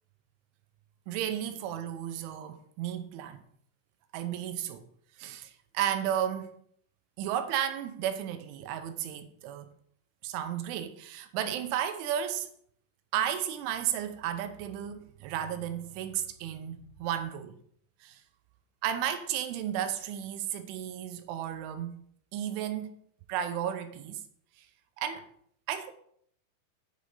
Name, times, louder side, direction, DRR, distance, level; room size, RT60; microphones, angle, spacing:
voice 1, 1.1-3.4 4.1-4.9 5.2-6.5 7.2-9.7 10.2-12.5 13.1-17.6 18.0-18.2 18.8-22.0 22.3-23.0 23.3-24.2 24.6-24.7 25.0-25.3 25.7-25.9, right 10 dB, 85° right, 3.1 m, -33 dB
9.7 x 6.3 x 4.0 m
omnidirectional pair, 5.6 m